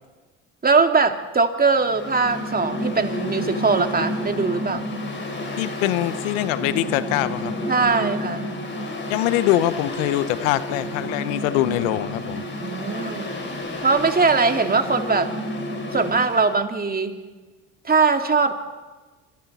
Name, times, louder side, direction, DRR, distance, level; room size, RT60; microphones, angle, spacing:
voice 1, 0.6-4.8 7.7-8.5 12.6-13.4 13.8-15.3 15.9-17.2 17.8-18.5, right 4 dB, 25° right, 6 dB, 2.3 m, -21 dB
Mechanical fan, 1.8-16.6, left 1 dB, 30° left, 5.2 m, -30 dB
voice 2, 5.6-7.5 9.1-12.4, left 14 dB, 85° left, 15 dB, 0.9 m, -23 dB
27.0 x 26.5 x 4.2 m, 1.3 s
supercardioid pair, 70°, 37 cm